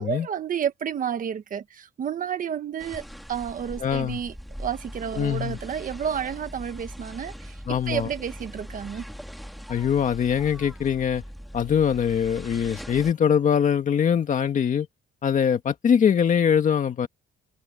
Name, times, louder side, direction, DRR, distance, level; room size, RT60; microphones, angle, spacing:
voice 1, 0.0-9.0, right 8 dB, 40° right, 1.2 m, -31 dB
sound 1, 2.8-13.1, equal, ahead, 2.1 m, -40 dB
voice 2, 3.8-4.2 5.2-5.6 7.7-8.1 9.7-11.2 11.5-14.9 15.2-17.1, left 8 dB, 40° left, 2.0 m, -22 dB
cardioid pair, 170°, 20 cm